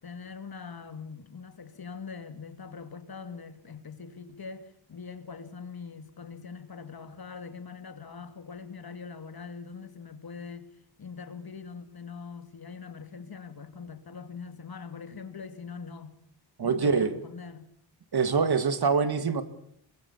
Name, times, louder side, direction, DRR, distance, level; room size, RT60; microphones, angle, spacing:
voice 1, 0.0-10.7 11.0-16.2 16.6-17.7, left 5 dB, 55° left, 2.5 m, -42 dB
voice 2, 16.6-17.1 18.1-19.4, right 5 dB, 55° right, 2.0 m, -24 dB
24.0 x 21.0 x 7.2 m
wide cardioid pair, 95°, 45 cm